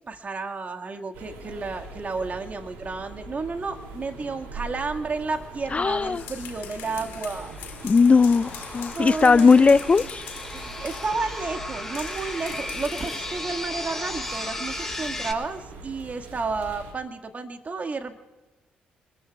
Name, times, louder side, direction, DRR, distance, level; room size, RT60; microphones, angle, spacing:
voice 1, 0.1-7.5 8.9-10.1 10.5-18.2, right 4 dB, 40° right, 5 dB, 1.9 m, -32 dB
sound 1, 1.1-16.9, right 3 dB, 85° right, 2.9 m, -42 dB
sound 2, 4.5-15.3, left 1 dB, 5° left, 5.7 m, -37 dB
voice 2, 5.7-6.2 7.8-10.2, left 4 dB, 35° left, 16 dB, 0.4 m, -18 dB
sound 3, 6.0-11.2 11.9-13.3, left 10 dB, 75° left, 2.1 m, -43 dB
26.5 x 22.0 x 2.4 m, 1.2 s
hypercardioid pair, 50°, 4 cm